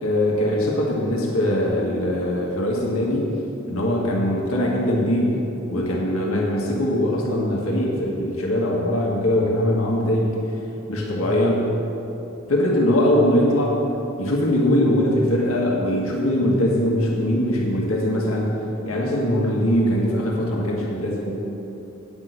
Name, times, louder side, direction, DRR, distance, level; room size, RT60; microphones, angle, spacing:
voice 1, 0.0-3.2 3.7-5.3 5.7-10.5 10.9-11.7 12.5-13.8 14.2-18.5 18.9-21.3, left 1 dB, 90° left, -2 dB, 1.8 m, -21 dB
8.8 x 6.1 x 8.2 m, 2.9 s
head